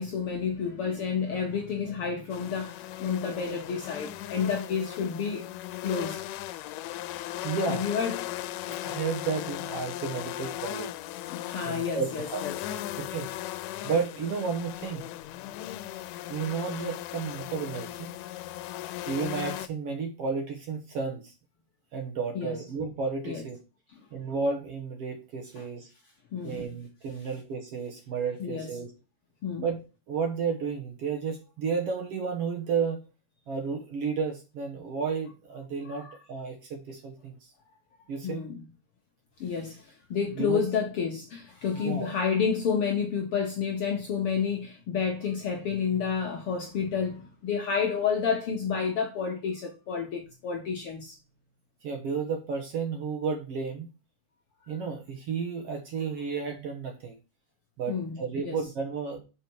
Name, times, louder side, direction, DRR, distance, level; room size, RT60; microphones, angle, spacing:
voice 1, 0.0-5.5 5.8-6.2 7.7-8.3 11.3-12.5 22.3-22.5 23.2-23.4 25.6-25.7 26.3-26.7 28.4-28.7 29.4-29.7 35.9-36.1 38.2-38.6 39.4-51.2 57.9-58.6, left 6 dB, 65° left, 1.5 m, -30 dB
sound 1, 2.3-19.7, left 14 dB, 90° left, 2.2 m, -37 dB
voice 2, 7.4-7.8 8.8-10.9 11.7-12.5 13.0-13.3 13.8-15.1 16.3-18.1 19.1-21.3 21.9-23.6 24.1-25.9 26.4-28.9 29.6-29.8 30.1-33.0 33.5-37.5 38.1-38.4 40.3-40.6 41.7-42.1 51.8-53.9 54.7-57.2 57.8-59.2, right 5 dB, 60° right, 1.8 m, -32 dB
6.2 x 5.0 x 4.6 m
omnidirectional pair, 3.7 m